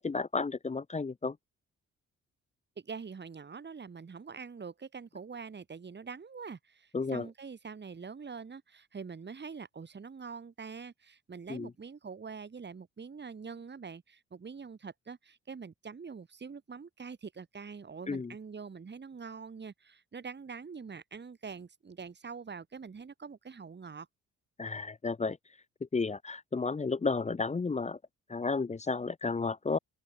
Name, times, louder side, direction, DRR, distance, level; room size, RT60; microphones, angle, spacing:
voice 1, 0.0-1.4 6.9-7.3 11.5-11.7 18.1-18.3 24.6-25.4 25.9-28.0 28.3-29.8, left 4 dB, 20° left, 1.0 m, -32 dB
voice 2, 2.8-24.1, right 5 dB, 35° right, 5.3 m, -44 dB
open air
cardioid pair, 90°, 30 cm